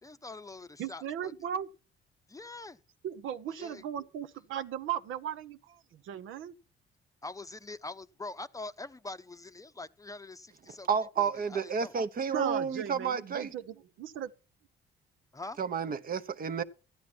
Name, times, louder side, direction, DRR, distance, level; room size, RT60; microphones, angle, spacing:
voice 1, 0.0-1.3 2.3-2.8 3.6-3.8 7.2-10.9 11.2-11.9 15.3-15.6, left 3 dB, 15° left, 0.7 m, -44 dB
voice 2, 0.8-1.7 3.0-6.5 12.3-14.3, right 9 dB, 85° right, 0.9 m, -37 dB
voice 3, 10.9-13.5 15.6-16.6, right 6 dB, 45° right, 1.0 m, -31 dB
13.0 x 10.5 x 4.5 m
cardioid pair, 90°, 20 cm